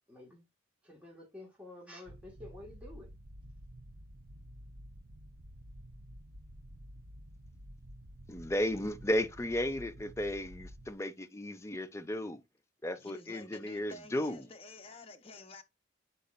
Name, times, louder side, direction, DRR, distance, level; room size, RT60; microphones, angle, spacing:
voice 1, 0.1-0.4 0.8-3.1, left 1 dB, 5° right, 1.8 m, -50 dB
sound 1, 2.1-10.9, equal, 55° right, 0.7 m, -51 dB
voice 2, 8.3-12.4 12.8-14.5, left 1 dB, 15° left, 0.5 m, -34 dB
voice 3, 12.9-15.6, left 3 dB, 30° left, 0.9 m, -51 dB
8.4 x 5.0 x 2.5 m
head